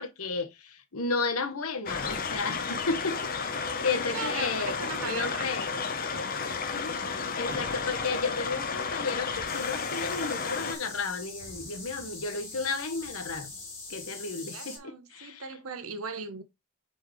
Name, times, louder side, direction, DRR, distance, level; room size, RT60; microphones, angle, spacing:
voice 1, 0.0-5.7 6.7-13.5 13.9-15.4, left 4 dB, 80° left, 1.0 m, -33 dB
sound 1, 1.9-10.7, left 5 dB, 40° left, 0.8 m, -32 dB
voice 2, 3.8-5.6 6.8-7.2 14.5-16.4, right 5 dB, 75° right, 0.9 m, -39 dB
sound 2, 7.5-14.2, equal, 15° right, 2.7 m, -51 dB
sound 3, 9.5-14.8, left 3 dB, 15° left, 3.5 m, -43 dB
4.9 x 4.5 x 4.5 m
head